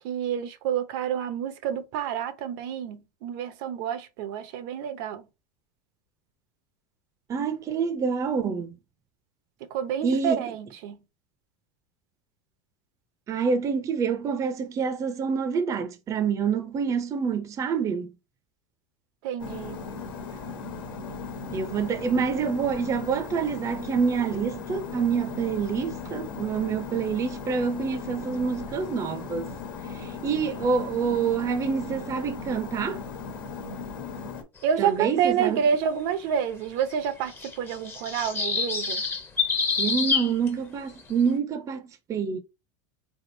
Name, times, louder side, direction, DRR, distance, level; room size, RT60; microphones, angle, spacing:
voice 1, 0.0-5.2 9.7-11.0 19.2-19.8 34.6-37.3 37.6-39.0, right 8 dB, 65° right, 0.7 m, -28 dB
voice 2, 7.3-8.8 10.0-10.4 13.3-18.1 21.5-29.5 29.9-33.0 34.8-35.6 39.8-42.4, right 6 dB, 30° right, 0.6 m, -27 dB
sound 1, 19.4-34.4, left 5 dB, 80° left, 1.3 m, -37 dB
sound 2, 36.8-40.5, left 5 dB, 20° left, 0.8 m, -27 dB
3.8 x 3.5 x 2.6 m
supercardioid pair, 125°, 11 cm